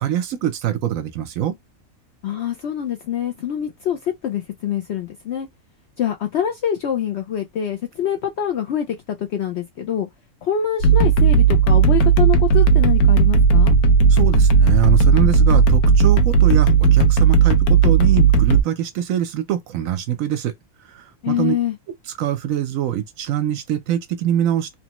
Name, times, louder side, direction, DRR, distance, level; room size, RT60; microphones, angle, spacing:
voice 1, 0.0-1.6 14.1-20.5 20.8-21.5 22.2-24.7, right 11 dB, 70° right, 0.9 m, -24 dB
voice 2, 2.2-5.5 6.0-10.1 10.4-13.8 21.2-21.8, left 9 dB, 65° left, 0.6 m, -25 dB
sound 1, 10.8-18.6, right 5 dB, 85° left, 1.1 m, -14 dB
3.0 x 2.1 x 2.9 m
omnidirectional pair, 1.6 m